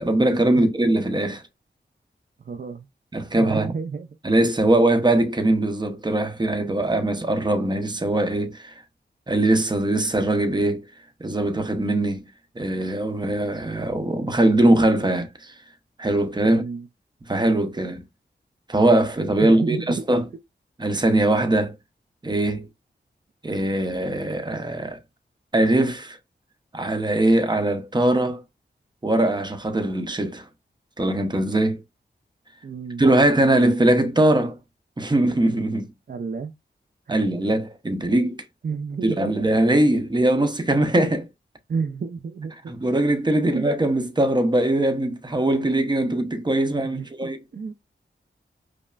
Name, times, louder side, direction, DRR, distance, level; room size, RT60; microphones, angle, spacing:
voice 1, 0.0-1.4 3.1-3.7 4.2-8.8 9.3-10.9 11.2-12.3 12.6-15.5 16.0-16.6 17.3-18.0 18.7-20.3 20.8-21.8 22.2-22.7 23.4-25.0 25.5-26.2 26.7-28.4 29.0-30.5 31.0-31.8 33.0-34.6 35.0-35.9 37.1-38.4 39.0-41.3 42.7-47.4, right 1 dB, 25° right, 0.8 m, -21 dB
voice 2, 2.4-2.9 3.4-4.1 16.4-16.9 19.4-20.0 32.6-33.0 36.1-36.5 37.1-37.2 38.6-39.5 41.7-42.7 43.4-43.6 46.8-47.1 47.5-47.7, right 5 dB, 50° right, 0.5 m, -31 dB
5.4 x 2.1 x 2.4 m
cardioid pair, 60°, 19 cm